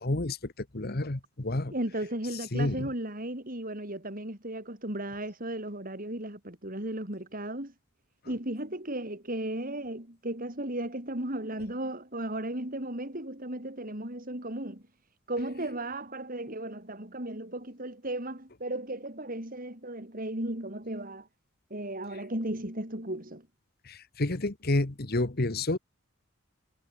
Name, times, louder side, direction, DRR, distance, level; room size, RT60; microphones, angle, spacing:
voice 1, 0.0-1.7 2.5-2.9 23.9-25.8, left 2 dB, 50° left, 1.4 m, -30 dB
voice 2, 1.7-7.7 8.3-14.8 15.3-21.3 21.7-23.5, right 1 dB, 45° right, 5.8 m, -35 dB
head